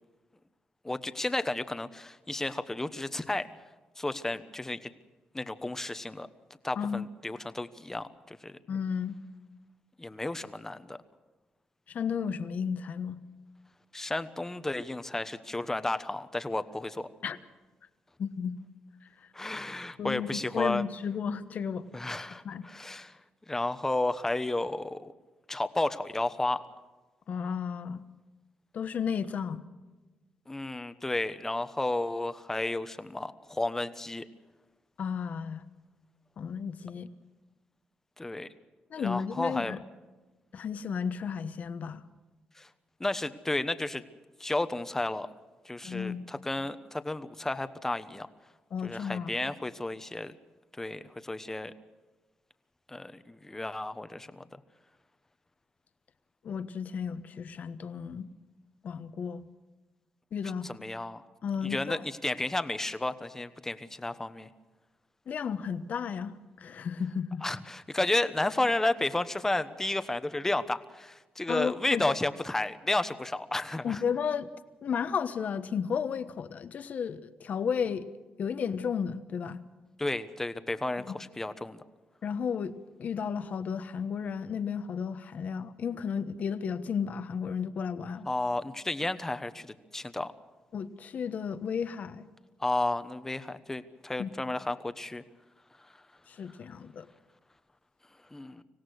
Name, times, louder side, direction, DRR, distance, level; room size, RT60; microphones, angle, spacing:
voice 1, 0.8-3.5 4.0-4.9 5.3-6.3 6.6-8.5 10.0-11.0 13.9-17.1 19.3-20.8 21.9-23.2 23.5-25.1 25.5-26.6 30.5-34.3 38.2-38.5 39.0-39.8 42.6-42.7 43.0-44.0 44.4-45.3 45.6-48.3 48.8-50.4 50.8-51.7 52.9-54.4 60.6-61.2 61.6-64.5 67.4-74.0 80.0-81.8 88.3-89.7 89.9-90.3 92.6-95.2 98.3-98.6, left 2 dB, 15° left, 11 dB, 1.1 m, -32 dB
voice 2, 8.7-9.2 11.9-13.2 17.2-17.4 18.2-18.6 20.0-21.9 22.4-22.7 27.3-28.0 28.7-29.6 35.0-35.6 36.4-37.1 38.9-39.8 40.5-42.0 45.8-46.2 48.7-49.5 56.4-58.3 58.8-59.4 60.3-60.7 61.4-62.0 65.3-67.5 71.5-72.0 73.8-74.5 74.8-78.1 78.4-79.6 81.0-81.2 82.2-82.7 83.0-88.3 90.7-92.2 94.2-94.3 96.3-97.1, left 7 dB, 60° left, 11 dB, 1.2 m, -33 dB
26.0 x 17.0 x 6.4 m, 1.2 s
cardioid pair, 105°, 3 cm